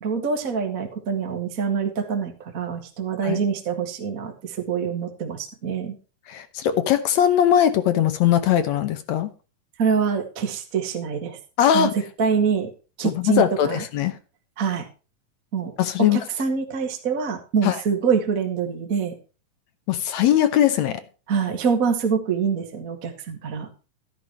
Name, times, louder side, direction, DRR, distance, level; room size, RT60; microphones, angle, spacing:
voice 1, 0.0-5.9 9.8-11.4 11.7-11.9 12.2-12.7 13.0-13.8 14.6-14.9 15.5-15.7 16.0-19.1 21.3-23.7, right 6 dB, 35° right, 4 dB, 1.5 m, -25 dB
voice 2, 6.3-9.3 11.6-11.9 13.0-14.2 15.8-16.2 17.6-17.8 19.9-21.0, left 10 dB, 70° left, 10 dB, 2.0 m, -20 dB
12.5 x 11.0 x 3.0 m, 0.33 s
omnidirectional pair, 3.8 m